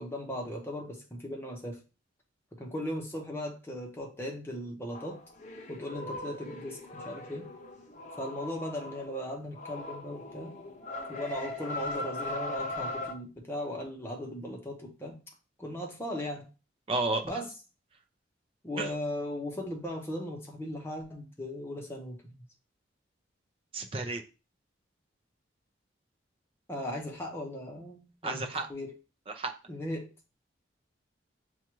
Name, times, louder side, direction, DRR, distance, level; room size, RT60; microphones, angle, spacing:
voice 1, 0.0-1.8 2.5-5.2 5.7-7.5 8.2-10.6 11.1-15.2 15.6-16.5 17.2-17.5 18.6-22.3 26.7-28.9 29.7-30.1, left 1 dB, 10° left, 0 dB, 0.8 m, -37 dB
sound 1, 4.9-9.2 9.5-13.1, left 2 dB, 40° left, 0.5 m, -39 dB
voice 2, 16.9-17.4 18.8-18.9 23.7-24.2 28.2-28.7 29.3-29.5, right 3 dB, 30° right, 6 dB, 0.5 m, -32 dB
7.0 x 2.3 x 3.0 m, 0.32 s
head